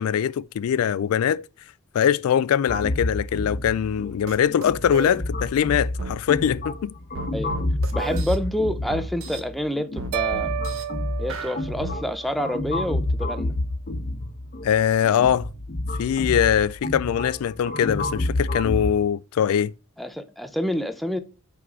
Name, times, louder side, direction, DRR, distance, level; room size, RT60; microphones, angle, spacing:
voice 1, 0.0-1.5 1.9-6.9 14.6-15.5 16.0-19.7, left 9 dB, 70° left, 0.3 m, -22 dB
sound 1, 2.7-18.9, left 1 dB, 40° left, 1.0 m, -29 dB
sound 2, 4.3-4.4 4.6-5.2 6.0-6.2 7.1-8.4 8.9-9.4 10.0-10.8 11.3-12.0, right 4 dB, 65° right, 1.1 m, -33 dB
voice 2, 7.9-10.5 11.2-13.5 20.0-21.2, equal, ahead, 0.6 m, -28 dB
sound 3, 10.1-12.4, right 11 dB, 90° right, 0.4 m, -31 dB
5.9 x 4.7 x 6.1 m
head